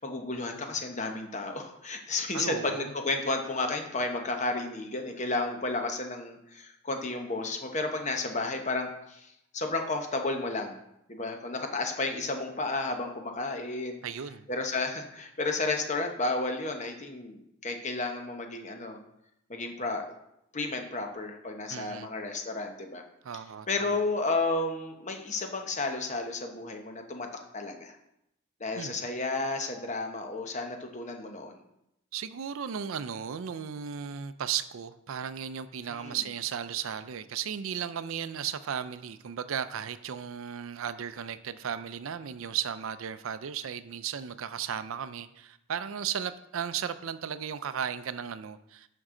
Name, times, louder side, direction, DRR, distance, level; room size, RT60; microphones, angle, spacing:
voice 1, 0.0-10.8 11.1-14.0 14.5-19.0 19.5-20.1 20.5-23.0 23.7-27.3 27.5-28.0 28.6-31.6 36.0-36.2, left 3 dB, 35° left, 4 dB, 1.0 m, -32 dB
voice 2, 2.3-2.9 14.0-14.5 21.7-22.1 23.2-23.7 28.8-29.0 32.1-48.9, right 8 dB, 70° right, 13 dB, 0.4 m, -35 dB
11.0 x 5.4 x 3.8 m, 0.81 s
head